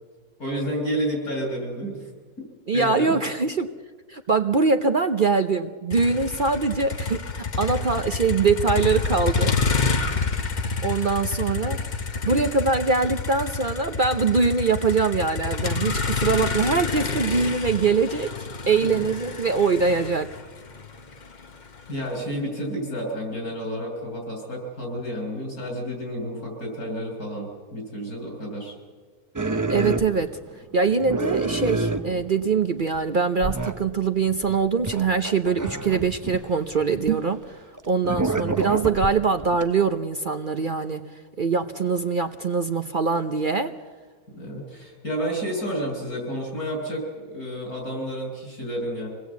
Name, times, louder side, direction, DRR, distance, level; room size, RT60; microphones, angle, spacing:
voice 1, 0.4-2.1 2.4-2.5 2.7-3.2 18.7-19.1 21.9-28.7 44.3-49.1, equal, 80° left, 2 dB, 6.6 m, -31 dB
voice 2, 2.7-3.7 4.1-7.2 7.6-9.5 10.8-11.8 12.2-18.3 18.7-20.3 29.7-30.4 30.7-37.4 37.9-41.0 41.4-43.7, right 4 dB, 45° right, 7 dB, 0.8 m, -23 dB
Motor vehicle (road), 5.9-22.0, left 4 dB, 35° left, 1.0 m, -28 dB
sound 1, 29.4-30.5 30.9-32.6 32.9-33.0 33.4-33.8 34.3-37.1 37.8-39.7, right 3 dB, 20° right, 0.4 m, -28 dB
sound 2, 37.0-37.5, right 12 dB, 70° right, 1.5 m, -28 dB
26.0 x 18.5 x 8.2 m, 1.5 s
omnidirectional pair, 1.6 m